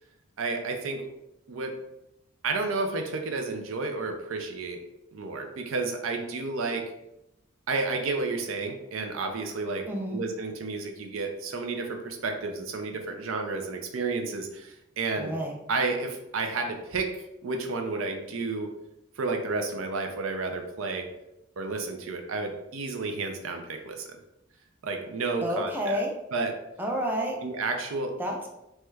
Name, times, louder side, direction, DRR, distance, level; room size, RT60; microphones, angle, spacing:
voice 1, 0.4-1.0 1.5-1.8 2.4-4.8 5.1-6.9 7.7-15.3 15.7-17.1 17.4-18.7 19.2-21.1 21.6-24.2 24.8-26.0 26.3-26.5 27.4-28.2, right 3 dB, 90° right, 4 dB, 0.5 m, -31 dB
voice 2, 9.9-10.2 15.2-15.5 25.4-26.1 26.8-27.4 28.2-28.5, equal, 10° right, 0 dB, 0.4 m, -29 dB
3.0 x 2.3 x 3.1 m, 0.86 s
head